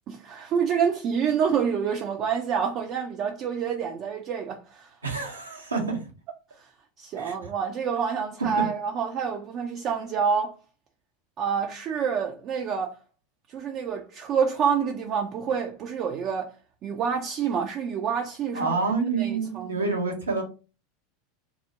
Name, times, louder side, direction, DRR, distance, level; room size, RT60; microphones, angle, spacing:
voice 1, 0.1-4.9 6.6-6.7 7.0-10.6 11.4-13.0 13.5-16.5 16.8-18.8 19.1-19.8, right 7 dB, 45° right, 0.3 m, -27 dB
voice 2, 5.0-6.0 7.2-7.3 8.6-8.7 18.5-20.4, right 4 dB, 85° right, 0.8 m, -27 dB
2.3 x 2.0 x 2.8 m
figure-of-eight pair, 85°, 0 cm